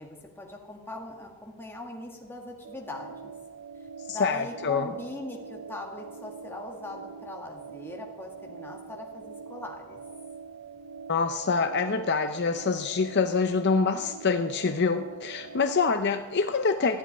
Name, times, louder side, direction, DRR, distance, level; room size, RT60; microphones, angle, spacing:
voice 1, 0.0-3.3 4.1-10.0, left 2 dB, 10° left, 0 dB, 2.0 m, -40 dB
sound 1, 2.6-15.9, right 5 dB, 80° right, 0.7 m, -44 dB
voice 2, 4.1-4.9 11.1-17.0, left 4 dB, 50° left, 7 dB, 0.6 m, -26 dB
15.0 x 7.7 x 10.0 m, 1.4 s
head